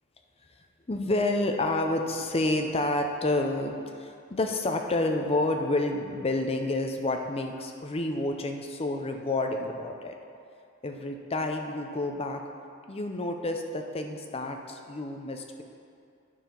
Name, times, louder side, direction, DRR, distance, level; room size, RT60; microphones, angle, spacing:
voice 1, 0.9-10.1 10.8-12.4 12.9-15.6, left 2 dB, 30° left, 4 dB, 0.6 m, -29 dB
10.0 x 4.5 x 5.3 m, 2.4 s
head